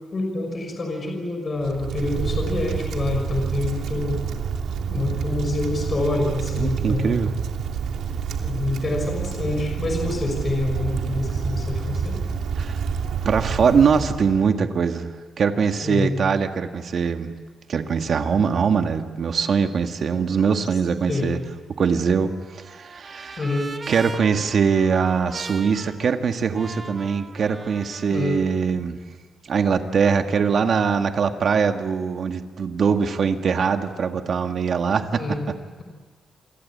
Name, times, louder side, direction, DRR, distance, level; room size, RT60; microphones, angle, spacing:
voice 1, 0.1-4.2 4.9-7.2 8.4-12.2 15.8-16.2 21.1-21.3 23.4-23.7 28.1-28.4 35.1-35.4, left 2 dB, 30° left, 3 dB, 5.8 m, -26 dB
Wind, 1.6-14.4, right 6 dB, 80° right, 2.9 m, -28 dB
voice 2, 6.6-7.3 12.6-12.8 13.3-17.3 17.7-21.4 21.8-22.3 22.6-23.4 23.9-29.0 29.5-35.2, right 6 dB, 50° right, 6 dB, 1.9 m, -22 dB
Trumpet, 21.9-28.2, right 3 dB, 25° right, 1.6 m, -40 dB
28.0 x 24.5 x 8.6 m, 1.4 s
wide cardioid pair, 150°, 0 cm